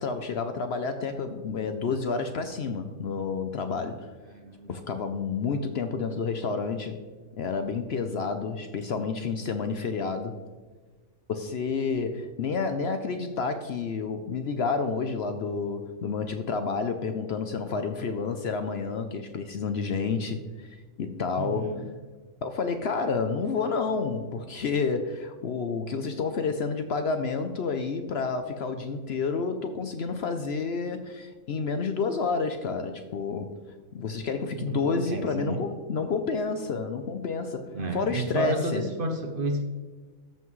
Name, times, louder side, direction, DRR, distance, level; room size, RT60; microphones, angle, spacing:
voice 1, 0.0-4.1 4.7-7.0 7.4-10.4 11.3-21.7 22.4-33.5 33.9-38.9, left 4 dB, 60° left, 8 dB, 0.8 m, -30 dB
voice 2, 4.3-4.8 21.4-21.9 34.5-35.6 37.7-39.6, right 2 dB, 50° right, 5 dB, 0.8 m, -32 dB
14.0 x 5.7 x 3.1 m, 1.4 s
omnidirectional pair, 1.4 m